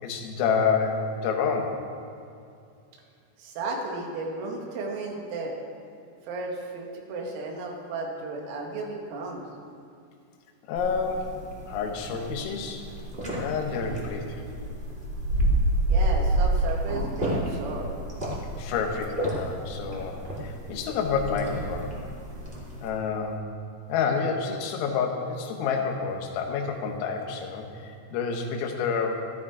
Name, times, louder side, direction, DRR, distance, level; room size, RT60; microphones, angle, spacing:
voice 1, 0.0-1.8 10.7-11.4 11.7-12.8 13.3-14.4 18.6-21.9 22.8-23.4 23.9-29.2, left 5 dB, 80° left, 3 dB, 3.9 m, -28 dB
voice 2, 3.4-5.6 6.2-9.4 15.9-17.9, right 3 dB, 80° right, 0 dB, 4.4 m, -34 dB
sound 1, 10.7-22.9, right 1 dB, 20° right, 1.4 m, -29 dB
13.5 x 13.0 x 4.9 m, 2.5 s
omnidirectional pair, 6.0 m